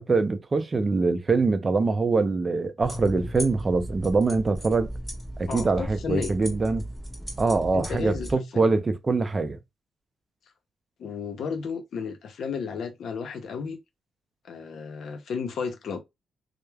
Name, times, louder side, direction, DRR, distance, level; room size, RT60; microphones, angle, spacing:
voice 1, 0.0-4.9 5.4-6.8 7.4-9.6, right 3 dB, 30° right, 0.4 m, -24 dB
sound 1, 2.8-8.3, right 1 dB, ahead, 1.3 m, -36 dB
voice 2, 5.5-6.3 7.7-8.3 8.5-8.7 11.0-13.8 14.4-16.0, left 6 dB, 70° left, 0.6 m, -33 dB
3.1 x 2.0 x 2.3 m
cardioid pair, 85°, 0 cm